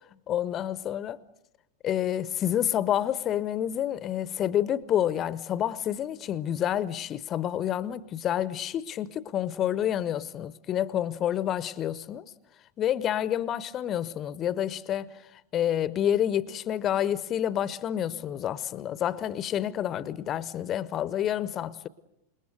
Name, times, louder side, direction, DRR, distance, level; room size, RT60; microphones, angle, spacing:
voice 1, 0.3-1.2 1.8-12.2 12.8-15.1 15.5-21.9, left 10 dB, 30° left, 0.9 m, -28 dB
27.5 x 21.5 x 7.9 m
figure-of-eight pair, 90°, 0 cm